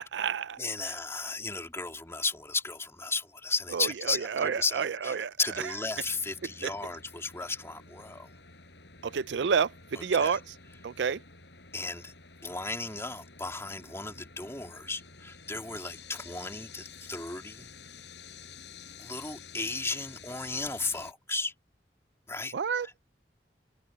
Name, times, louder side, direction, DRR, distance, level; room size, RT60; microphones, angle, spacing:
voice 1, 0.0-0.6 3.7-5.3 6.6-6.7 9.0-10.4 10.8-11.2 22.5-22.9, right 6 dB, 85° right, 0.5 m, -29 dB
voice 2, 0.6-8.3 10.0-10.4 11.7-12.1 12.4-17.7 19.0-21.5 22.3-22.5, left 3 dB, 15° left, 3.3 m, -35 dB
sound 1, 5.9-21.1, left 5 dB, 80° left, 7.5 m, -51 dB
head